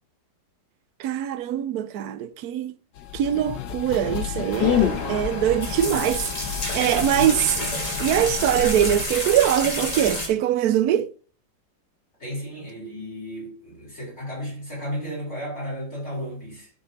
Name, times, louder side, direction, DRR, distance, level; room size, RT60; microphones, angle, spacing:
voice 1, 1.0-2.7 3.1-6.3 6.7-7.6 8.0-11.1, right 11 dB, 65° right, 1.1 m, -23 dB
sound 1, 3.0-9.0, left 10 dB, 75° left, 1.6 m, -29 dB
sound 2, 4.5-10.3, left 1 dB, 20° left, 2.5 m, -30 dB
voice 2, 7.1-8.0 12.2-16.7, equal, 40° left, 5.1 m, -34 dB
12.5 x 4.3 x 4.1 m
omnidirectional pair, 2.0 m